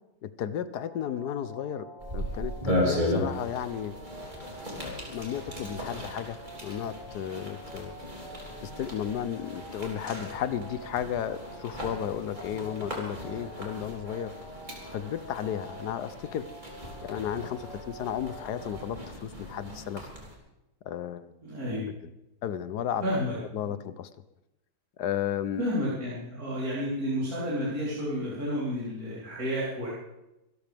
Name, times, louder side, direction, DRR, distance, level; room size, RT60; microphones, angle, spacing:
voice 1, 0.2-1.9 2.1-3.9 4.8-8.0 8.6-14.3 14.9-16.4 17.0-20.1 20.8-21.3 22.0-22.1 22.4-23.0 23.5-24.1 25.0-25.6, left 9 dB, 80° left, 13 dB, 1.4 m, -34 dB
sound 1, 0.8-18.9, equal, 85° right, 3.9 m, -47 dB
sound 2, 2.0-20.4, left 1 dB, 25° right, 3.6 m, -37 dB
voice 2, 21.4-21.9 23.0-23.3 23.6-23.7 25.6-29.9, equal, 60° right, -9 dB, 4.4 m, -31 dB
25.5 x 13.5 x 3.5 m, 0.94 s
omnidirectional pair, 1.7 m